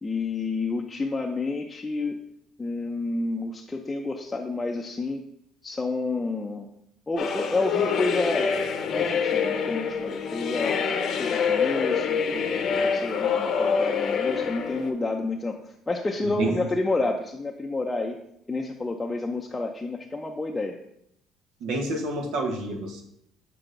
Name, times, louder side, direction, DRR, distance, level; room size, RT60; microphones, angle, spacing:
voice 1, 0.0-2.2 2.6-5.2 5.6-6.7 7.1-10.8 11.2-18.2 18.5-20.8, left 3 dB, 15° left, 1 dB, 0.5 m, -29 dB
sound 1, 7.2-14.9, left 6 dB, 55° left, 0.7 m, -26 dB
voice 2, 21.6-23.0, right 2 dB, 75° right, 3 dB, 1.0 m, -28 dB
6.7 x 6.1 x 2.5 m, 0.77 s
cardioid pair, 95°, 0 cm